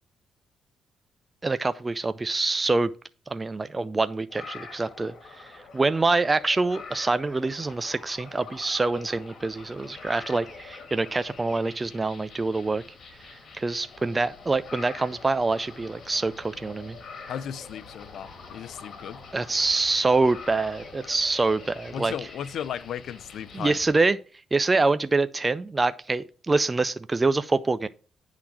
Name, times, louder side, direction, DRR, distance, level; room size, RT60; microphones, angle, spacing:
voice 1, 1.4-2.9 3.3-12.8 13.3-17.0 19.3-22.1 23.5-24.2 24.5-27.9, right 3 dB, 20° right, 0.4 m, -25 dB
sound 1, 4.3-24.0, left 4 dB, 55° left, 2.0 m, -45 dB
voice 2, 17.3-19.2 21.9-23.8, left 9 dB, 70° left, 0.5 m, -35 dB
9.8 x 3.9 x 5.9 m
cardioid pair, 90°, 0 cm